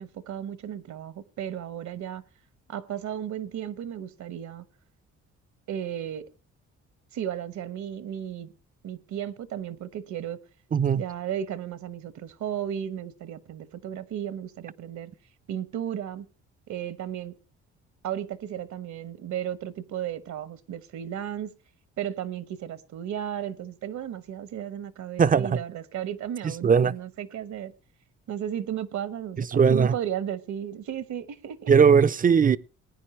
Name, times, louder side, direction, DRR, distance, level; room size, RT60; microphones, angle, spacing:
voice 1, 0.0-2.2 2.7-4.6 5.7-6.3 7.1-8.5 8.8-10.4 10.9-15.1 15.5-16.3 16.7-17.3 18.0-21.5 22.0-27.7 28.3-31.7, right 10 dB, 70° right, 1.1 m, -34 dB
voice 2, 10.7-11.0 25.2-25.5 26.6-26.9 29.5-29.9 31.7-32.6, right 6 dB, 30° right, 0.5 m, -18 dB
19.5 x 9.6 x 3.2 m
cardioid pair, 90°, 30 cm